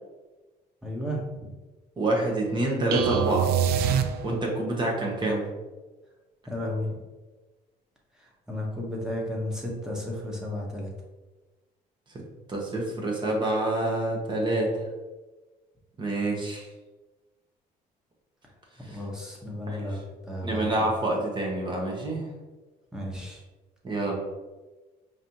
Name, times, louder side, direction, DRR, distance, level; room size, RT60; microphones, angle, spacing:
voice 1, 0.8-1.2 6.5-6.9 8.5-10.9 18.9-20.0 20.3-20.9 22.9-23.4, left 1 dB, 5° right, -2 dB, 1.0 m, -33 dB
voice 2, 2.0-3.5 4.2-5.5 12.5-14.8 16.0-16.7 18.9-19.0 19.7-20.0 20.4-22.3 23.8-24.1, right 1 dB, 25° right, -1 dB, 1.0 m, -27 dB
sound 1, 2.9-4.6, right 8 dB, 70° right, 0.4 m, -25 dB
5.1 x 2.6 x 2.9 m, 1.2 s
cardioid pair, 110°, 17 cm